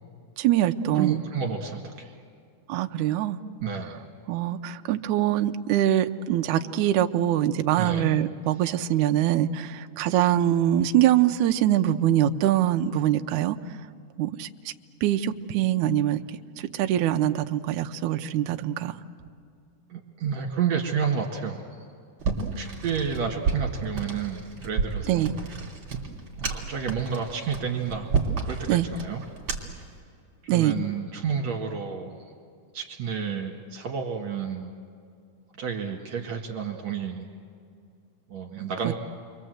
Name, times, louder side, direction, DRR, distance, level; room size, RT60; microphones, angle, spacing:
voice 1, 0.4-1.2 2.7-3.4 4.3-13.6 14.2-14.7 15.0-16.2 16.7-18.9 25.1-25.3 28.7-28.9 30.5-30.8 38.8-38.9, right 12 dB, 80° right, 6 dB, 1.8 m, -23 dB
voice 2, 0.9-2.1 3.6-4.0 7.8-8.1 19.9-21.7 22.5-25.3 26.4-28.1 28.4-29.2 30.4-32.2 32.7-34.7 35.6-37.3 38.3-38.9, right 6 dB, 50° right, 1 dB, 3.0 m, -30 dB
sound 1, 22.2-29.9, right 5 dB, 35° right, 3.3 m, -31 dB
30.0 x 23.5 x 7.9 m, 2.3 s
omnidirectional pair, 4.4 m